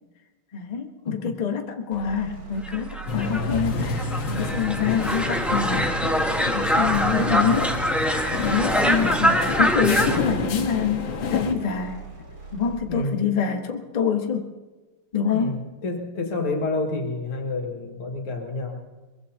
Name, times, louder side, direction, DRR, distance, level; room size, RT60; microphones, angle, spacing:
voice 1, 0.5-7.7 8.1-12.0 12.5-14.5 15.1-15.6, left 7 dB, 35° left, 4 dB, 0.7 m, -26 dB
voice 2, 1.0-1.4 12.9-13.3 15.3-18.8, left 2 dB, 85° left, 3 dB, 2.6 m, -29 dB
sound 1, 1.9-13.0, right 6 dB, 80° right, 3.4 m, -39 dB
sound 2, 2.7-10.2, equal, ahead, 0.7 m, -24 dB
sound 3, 3.1-11.5, left 4 dB, 65° left, 1.8 m, -29 dB
22.5 x 21.5 x 2.8 m, 1.3 s
omnidirectional pair, 2.4 m